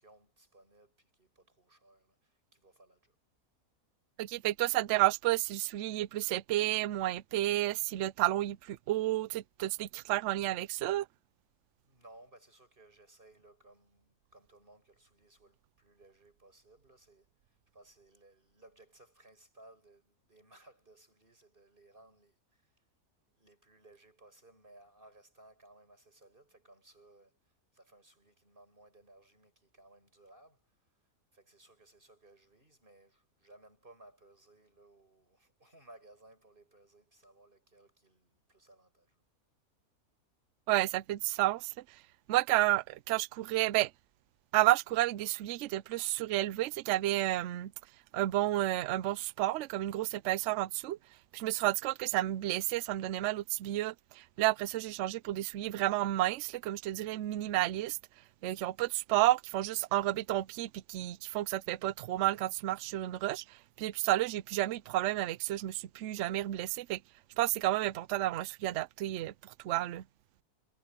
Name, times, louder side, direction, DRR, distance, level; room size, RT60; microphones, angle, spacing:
voice 1, 0.0-3.2 11.8-22.8 23.3-30.9 31.3-39.2, right 2 dB, 35° right, 8.1 m, -61 dB
voice 2, 4.2-11.1 40.7-41.7 42.3-43.9 44.5-47.7 48.1-51.0 51.3-58.0 58.4-67.0 67.4-70.0, right 15 dB, 65° right, 0.8 m, -31 dB
omnidirectional pair, 1.6 m